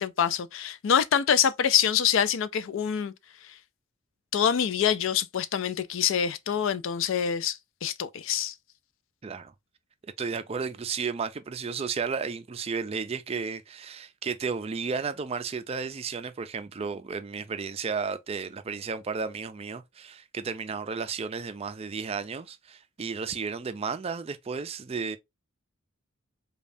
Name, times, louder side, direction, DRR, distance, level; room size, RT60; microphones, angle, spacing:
voice 1, 0.0-3.1 3.4-3.6 4.3-8.5, left 8 dB, 65° left, 0.4 m, -25 dB
voice 2, 9.2-9.5 10.0-25.2, right 5 dB, 30° right, 0.4 m, -33 dB
5.2 x 2.3 x 2.6 m
head